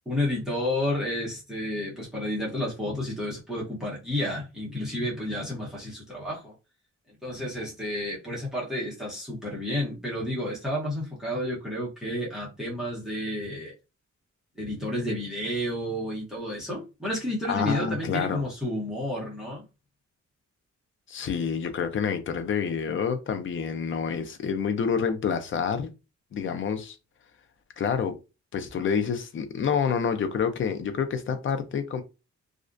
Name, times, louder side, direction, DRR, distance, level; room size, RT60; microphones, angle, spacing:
voice 1, 0.1-6.5 7.2-13.7 14.6-19.6, left 1 dB, ahead, 0.8 m, -31 dB
voice 2, 17.5-18.4 21.1-25.9 26.3-27.0 27.8-28.2 28.5-32.0, left 6 dB, 45° left, 0.4 m, -28 dB
2.4 x 2.1 x 2.4 m
wide cardioid pair, 150°, 30 cm